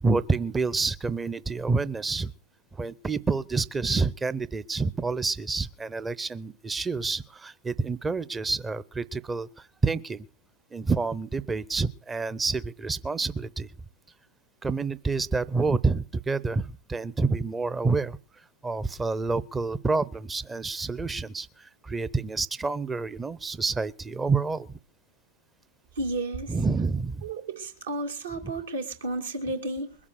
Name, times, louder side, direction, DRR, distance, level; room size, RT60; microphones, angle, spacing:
voice 1, 0.0-2.3 2.7-10.3 10.7-13.7 14.6-18.2 18.6-24.8 26.5-27.2 28.4-28.5, right 4 dB, 15° right, 0.7 m, -28 dB
voice 2, 26.0-26.6 27.2-30.0, right 2 dB, 65° right, 2.2 m, -32 dB
22.0 x 7.4 x 6.5 m
figure-of-eight pair, 90°, 0 cm